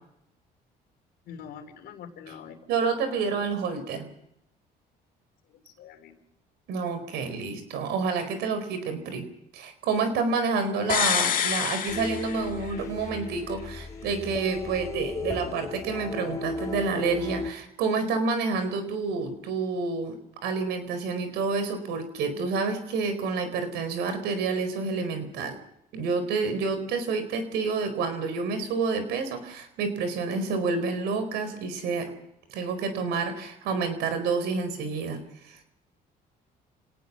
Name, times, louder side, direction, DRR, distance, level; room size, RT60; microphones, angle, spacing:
voice 1, 1.3-2.6 5.5-6.2, left 7 dB, 70° left, 7 dB, 3.5 m, -44 dB
voice 2, 2.7-4.1 6.7-9.3 9.5-20.2 20.4-25.6 25.9-32.1 32.5-35.2 35.4-35.6, right 4 dB, 85° right, 9 dB, 4.5 m, -29 dB
sound 1, 10.9-12.8 13.1-13.2, left 9 dB, 55° left, 2.0 m, -27 dB
sound 2, 11.9-17.5, left 3 dB, 20° left, 2.5 m, -36 dB
26.5 x 18.5 x 6.1 m, 0.78 s
cardioid pair, 110°, 17 cm